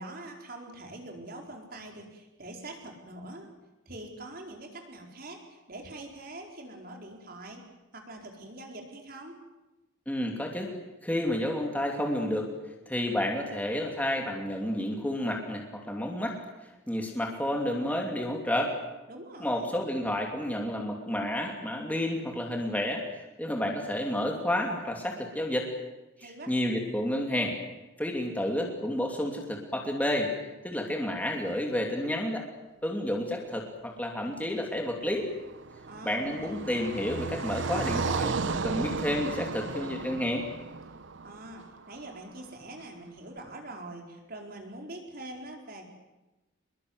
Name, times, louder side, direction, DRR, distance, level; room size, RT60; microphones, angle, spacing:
voice 1, 0.0-3.5 3.9-7.6 7.9-9.4 19.1-19.7 26.2-26.5 35.8-36.5 41.2-45.9, right 1 dB, 45° right, 2 dB, 4.5 m, -44 dB
voice 2, 10.1-10.7 11.0-12.5 12.9-16.4 16.9-18.7 19.4-23.0 23.4-25.7 26.5-27.6 28.0-30.3 30.6-32.4 32.8-35.3 36.0-40.4, left 1 dB, 10° left, 1 dB, 2.9 m, -30 dB
Car passing by, 34.9-42.2, right 4 dB, 65° right, 0.8 m, -34 dB
26.0 x 21.5 x 8.0 m, 1.0 s
head